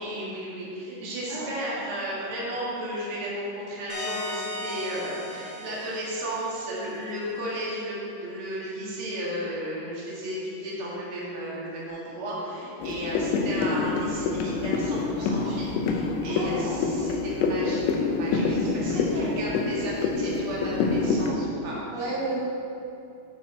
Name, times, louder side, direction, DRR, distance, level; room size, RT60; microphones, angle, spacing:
voice 1, 0.0-21.8, right 1 dB, 85° right, -7 dB, 1.2 m, -34 dB
sound 1, 3.9-7.3, left 1 dB, 45° left, 1.2 m, -37 dB
sound 2, 12.8-21.3, left 4 dB, 80° left, 3.0 m, -26 dB
voice 2, 16.4-16.8 18.9-19.7 19.9-20.1 21.9-22.4, right 2 dB, 50° right, -8 dB, 2.1 m, -34 dB
12.0 x 6.3 x 4.3 m, 2.7 s
omnidirectional pair, 5.7 m